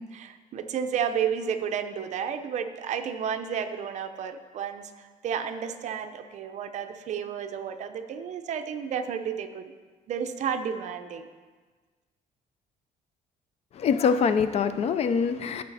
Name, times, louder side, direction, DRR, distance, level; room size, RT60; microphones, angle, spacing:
voice 1, 0.0-9.7 10.1-11.3, right 7 dB, 55° right, 8 dB, 0.7 m, -32 dB
voice 2, 13.7-15.6, left 6 dB, 45° left, 11 dB, 0.5 m, -24 dB
15.5 x 6.6 x 4.1 m, 1.4 s
cardioid pair, 160°, 15 cm